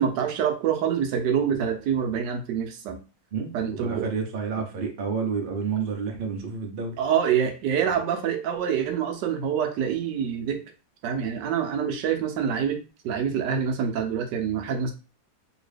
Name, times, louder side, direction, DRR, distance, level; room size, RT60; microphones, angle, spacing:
voice 1, 0.0-3.0 3.5-4.1 7.0-10.6 11.0-12.8 13.0-14.9, right 8 dB, 75° right, 5 dB, 1.2 m, -26 dB
voice 2, 3.3-6.9, right 5 dB, 55° right, 2 dB, 0.6 m, -30 dB
2.9 x 2.7 x 3.2 m, 0.33 s
omnidirectional pair, 1.9 m